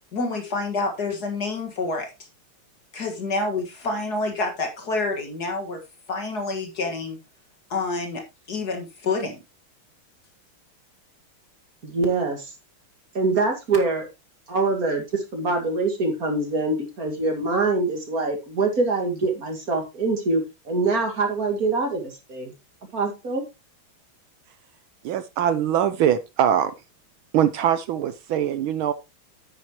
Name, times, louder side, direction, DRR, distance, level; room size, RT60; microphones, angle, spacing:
voice 1, 0.1-2.1 2.9-5.8 6.1-7.2 7.7-8.2 8.5-9.4, left 3 dB, 50° left, 4 dB, 2.1 m, -28 dB
voice 2, 11.8-12.5 13.1-14.1 14.5-22.5 22.9-23.4, right 3 dB, 40° right, 3 dB, 2.6 m, -24 dB
voice 3, 25.0-26.7 27.3-28.9, right 10 dB, 75° right, 13 dB, 1.5 m, -22 dB
9.7 x 9.4 x 2.9 m, 0.25 s
omnidirectional pair, 2.4 m